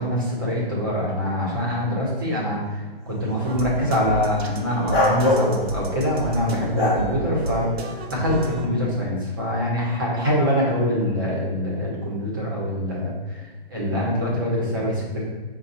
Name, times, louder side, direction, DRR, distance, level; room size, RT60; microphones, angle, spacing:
voice 1, 0.0-13.4 13.7-15.2, left 1 dB, 20° right, -5 dB, 0.8 m, -24 dB
sound 1, 3.3-3.4 4.9-6.1 6.8-7.7, left 1 dB, 10° left, 1.0 m, -23 dB
sound 2, 3.4-8.7, right 2 dB, 80° right, 0.7 m, -31 dB
5.4 x 2.3 x 4.1 m, 1.4 s
hypercardioid pair, 175°, 31 cm